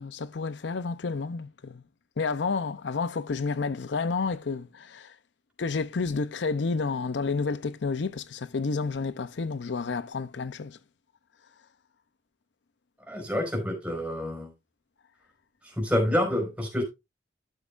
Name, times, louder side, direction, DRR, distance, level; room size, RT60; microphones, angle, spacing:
voice 1, 0.0-1.8 2.2-5.1 5.6-10.8, left 4 dB, 90° left, 0.6 m, -30 dB
voice 2, 13.1-14.5 15.7-16.8, left 1 dB, 10° right, 4.5 m, -27 dB
12.0 x 7.3 x 2.5 m
head